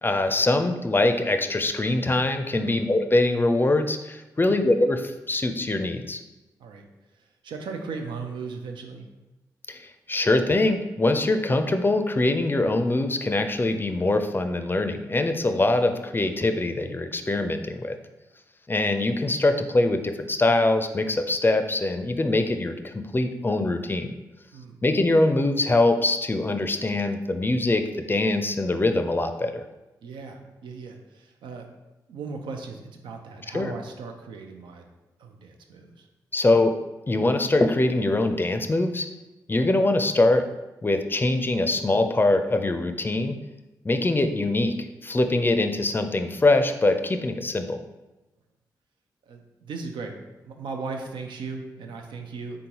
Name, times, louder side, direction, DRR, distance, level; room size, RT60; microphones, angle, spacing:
voice 1, 0.0-6.2 9.7-18.0 18.7-24.1 24.8-29.7 33.5-33.7 36.3-36.8 37.1-39.1 39.5-40.5 40.8-43.4 43.8-47.8, left 2 dB, 25° left, 7 dB, 0.4 m, -23 dB
voice 2, 7.2-9.1 24.5-24.8 30.0-31.7 32.1-34.8 35.2-36.1 49.2-52.7, right 4 dB, 80° right, 4 dB, 0.5 m, -37 dB
3.8 x 3.6 x 2.9 m, 1.0 s
supercardioid pair, 45°, 8 cm